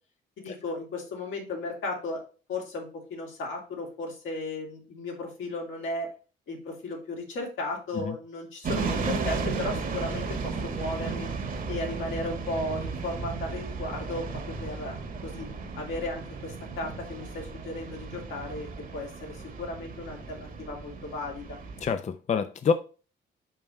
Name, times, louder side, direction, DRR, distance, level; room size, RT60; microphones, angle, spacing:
voice 1, 0.4-2.2 2.5-6.1 6.5-11.3 11.7-15.5 15.8-21.6, left 2 dB, 80° left, 2.8 m, -35 dB
sound 1, 8.6-21.9, right 4 dB, 45° right, 1.4 m, -34 dB
voice 2, 21.8-22.7, left 6 dB, 35° left, 0.5 m, -27 dB
5.5 x 5.1 x 4.4 m
cardioid pair, 90°, 20 cm